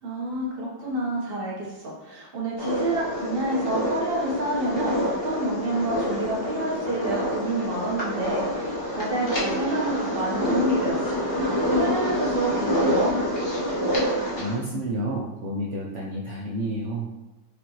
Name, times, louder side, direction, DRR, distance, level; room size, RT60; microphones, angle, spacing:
voice 1, 0.0-11.2 11.8-13.1, right 1 dB, 40° right, -4 dB, 1.0 m, -28 dB
sound 1, 2.6-14.5, equal, 25° left, 0.6 m, -27 dB
voice 2, 14.3-17.1, right 1 dB, 85° right, -4 dB, 0.6 m, -30 dB
5.4 x 2.5 x 2.9 m, 0.98 s
omnidirectional pair, 2.0 m